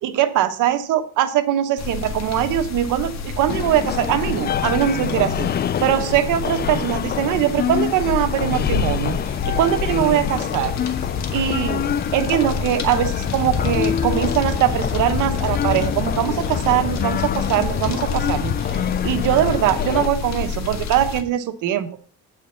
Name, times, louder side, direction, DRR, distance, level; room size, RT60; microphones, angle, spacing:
voice 1, 0.0-5.5 5.8-9.2 9.5-10.7 11.3-21.9, right 11 dB, 90° right, 10 dB, 1.1 m, -21 dB
sound 1, 1.8-21.2, left 5 dB, 60° left, 1.7 m, -29 dB
sound 2, 3.5-20.1, left 9 dB, 35° left, 0.4 m, -26 dB
8.6 x 5.0 x 6.9 m, 0.43 s
cardioid pair, 90°, 30 cm